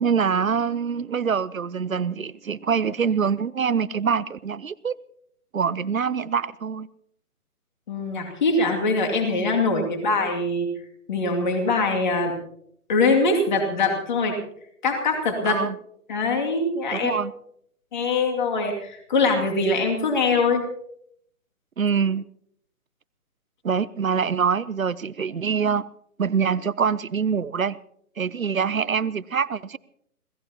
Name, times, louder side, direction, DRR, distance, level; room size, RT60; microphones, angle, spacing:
voice 1, 0.0-4.9 5.5-6.9 15.4-15.8 16.9-17.3 21.8-22.2 23.6-25.8 26.2-27.8 28.2-29.8, right 6 dB, 65° right, 0.7 m, -24 dB
voice 2, 7.9-10.7 11.1-12.3 12.9-14.4 14.8-15.6 16.1-17.1 17.9-20.6, left 3 dB, 30° left, 2.4 m, -23 dB
27.0 x 17.0 x 2.9 m
figure-of-eight pair, 145°, 45 cm